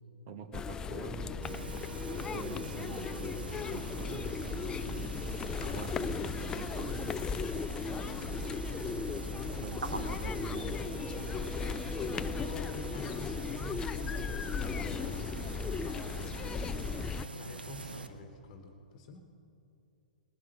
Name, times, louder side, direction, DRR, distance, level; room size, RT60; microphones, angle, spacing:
voice 1, 0.3-1.7 2.2-5.2 5.6-7.1 9.6-11.2, right 6 dB, 45° right, 8 dB, 1.5 m, -46 dB
sound 1, 0.5-17.3, left 5 dB, 15° left, 0.3 m, -36 dB
sound 2, 0.9-7.0 10.3-16.3, left 1 dB, 10° right, 0.9 m, -52 dB
sound 3, 1.4-18.1, right 3 dB, 80° right, 1.0 m, -43 dB
voice 2, 8.8-9.4 12.0-16.6 17.3-19.2, left 4 dB, 45° left, 5 dB, 1.3 m, -48 dB
20.0 x 9.9 x 6.6 m, 2.8 s
figure-of-eight pair, 115°, 5 cm